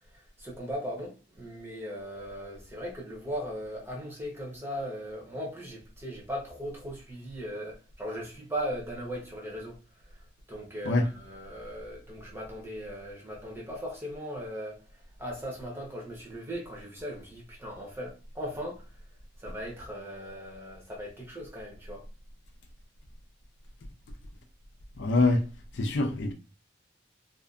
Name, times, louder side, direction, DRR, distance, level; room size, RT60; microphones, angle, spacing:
voice 1, 0.4-9.8 10.5-14.8 15.2-18.8 19.4-22.0, equal, 15° right, 0.8 m, -38 dB
voice 2, 25.0-25.4 25.8-26.3, left 2 dB, 70° left, 0.4 m, -24 dB
2.6 x 2.4 x 2.3 m
head